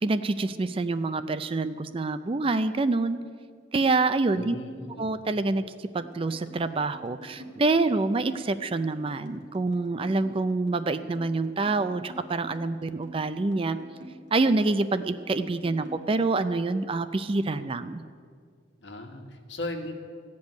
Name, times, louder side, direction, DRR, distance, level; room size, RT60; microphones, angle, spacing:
voice 1, 0.0-3.2 3.7-4.6 5.0-13.8 14.3-18.0, right 3 dB, 30° right, 12 dB, 0.4 m, -26 dB
voice 2, 4.3-5.1 18.8-19.9, left 1 dB, 70° left, 3 dB, 1.5 m, -37 dB
sound 1, 6.0-16.5, right 1 dB, 75° right, 2.2 m, -48 dB
16.0 x 5.4 x 9.1 m, 2.1 s
head